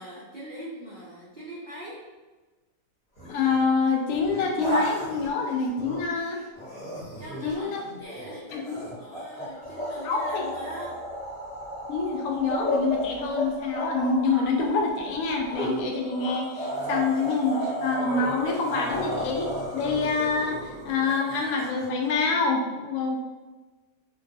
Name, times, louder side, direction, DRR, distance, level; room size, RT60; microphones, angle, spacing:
voice 1, 0.0-2.0 7.2-11.0, right 1 dB, 75° right, -8 dB, 0.4 m, -42 dB
sound 1, 3.2-3.6 4.1-6.2 6.6-22.1, equal, 35° left, 1.0 m, -33 dB
voice 2, 3.3-6.4 7.4-7.8 8.5-8.8 10.0-10.4 11.9-23.2, left 4 dB, 70° left, 1 dB, 0.8 m, -26 dB
3.0 x 2.3 x 2.6 m, 1.2 s
omnidirectional pair, 1.8 m